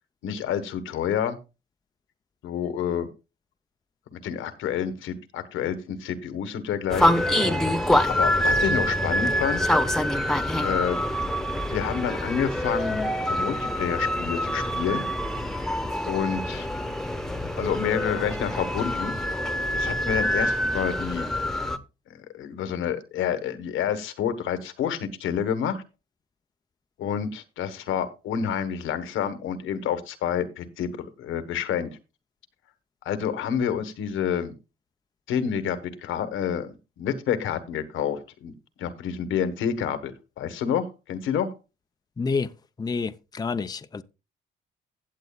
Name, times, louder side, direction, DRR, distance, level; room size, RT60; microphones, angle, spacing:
voice 1, 0.2-1.4 2.4-3.1 4.1-7.1 8.1-9.7 10.6-11.0 11.7-15.1 16.1-16.7 17.6-19.2 19.7-21.3 22.3-25.8 27.0-30.9 31.2-31.9 33.0-34.5 35.3-38.5 38.8-41.5, left 8 dB, 85° left, 1.3 m, -28 dB
sound 1, 6.9-21.8, left 1 dB, ahead, 1.1 m, -25 dB
voice 2, 42.2-42.5 42.8-44.0, left 4 dB, 20° left, 0.6 m, -28 dB
16.0 x 8.2 x 2.3 m
cardioid pair, 90°, 20 cm